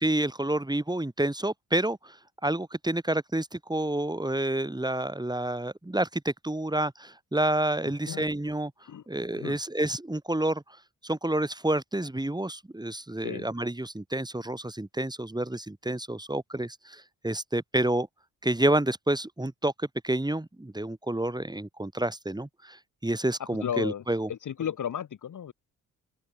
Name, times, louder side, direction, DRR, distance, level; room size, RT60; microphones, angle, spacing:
voice 1, 0.0-2.2 2.4-8.7 9.1-10.6 11.0-18.1 18.4-24.3, right 1 dB, 10° right, 2.5 m, -29 dB
voice 2, 23.6-24.0 24.3-25.5, left 9 dB, 55° left, 1.1 m, -33 dB
open air
cardioid pair, 60°, 36 cm